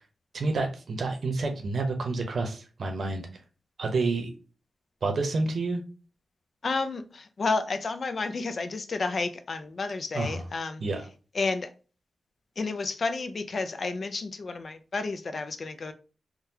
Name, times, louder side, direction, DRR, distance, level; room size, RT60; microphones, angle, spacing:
voice 1, 0.3-3.3 3.8-4.3 5.0-5.8 10.1-10.5 10.8-11.0, right 3 dB, 65° right, 5 dB, 0.8 m, -29 dB
voice 2, 6.6-10.8 11.3-11.7 12.6-15.9, left 3 dB, 55° left, 8 dB, 0.4 m, -31 dB
3.7 x 2.2 x 2.8 m, 0.35 s
cardioid pair, 75°, 0 cm